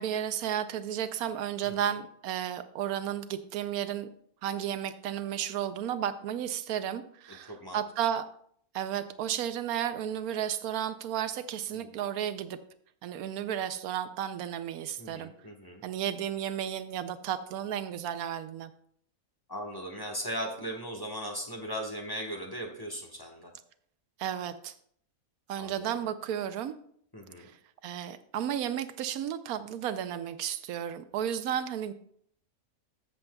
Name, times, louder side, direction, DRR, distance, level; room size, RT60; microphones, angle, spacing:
voice 1, 0.0-4.1 4.4-8.3 8.7-12.6 13.0-15.3 15.8-18.7 24.2-24.7 25.5-26.7 27.4-27.5 27.8-31.9, right 10 dB, 85° right, 11 dB, 1.1 m, -33 dB
voice 2, 1.6-1.9 7.3-7.8 11.7-11.9 15.0-15.8 19.5-23.5 25.6-26.0 27.1-27.5, equal, 15° left, 1 dB, 1.0 m, -38 dB
14.0 x 7.1 x 2.3 m, 0.65 s
omnidirectional pair, 1.5 m